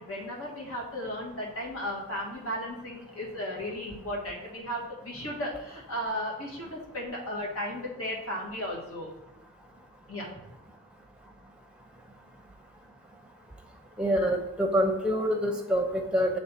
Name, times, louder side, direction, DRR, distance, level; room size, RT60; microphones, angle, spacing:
voice 1, 0.0-9.1 10.1-10.4, equal, 75° left, -3 dB, 1.7 m, -35 dB
voice 2, 14.0-16.4, equal, 5° right, 2 dB, 0.6 m, -26 dB
7.4 x 3.4 x 4.2 m, 0.91 s
head